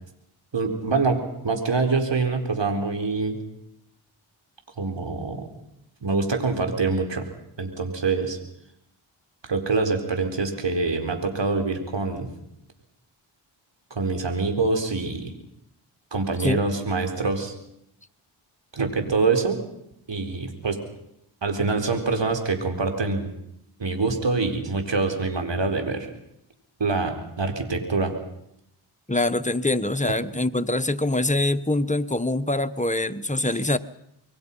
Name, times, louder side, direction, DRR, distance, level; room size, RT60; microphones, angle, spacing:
voice 1, 0.5-1.2 1.4-3.4 4.8-5.5 6.0-7.3 7.6-8.4 9.5-12.3 13.9-15.3 16.1-17.5 18.7-19.6 20.1-20.8 21.4-23.3 23.8-26.1 26.8-28.1 30.1-30.2, right 3 dB, 60° right, 5 dB, 4.5 m, -25 dB
voice 2, 29.1-33.8, left 2 dB, 15° left, 10 dB, 1.4 m, -24 dB
27.0 x 22.5 x 5.6 m, 0.78 s
cardioid pair, 45°, 50 cm